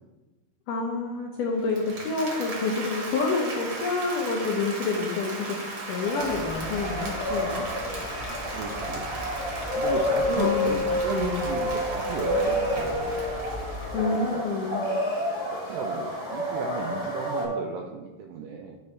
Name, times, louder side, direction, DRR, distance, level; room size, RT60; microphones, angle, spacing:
voice 1, 0.7-5.6 5.9-7.7 10.4-11.4 13.9-14.8, left 4 dB, 75° left, -1 dB, 2.0 m, -28 dB
Applause, 1.6-14.6, right 2 dB, 55° right, 1.5 m, -37 dB
sound 1, 6.0-17.4, left 1 dB, 15° left, 0.8 m, -29 dB
sound 2, 6.2-14.0, left 1 dB, 50° left, 0.8 m, -41 dB
voice 2, 8.3-9.2 9.8-13.2 14.0-14.4 15.5-18.8, right 5 dB, 85° right, 2 dB, 2.0 m, -35 dB
11.0 x 4.6 x 3.1 m, 1.2 s
omnidirectional pair, 4.5 m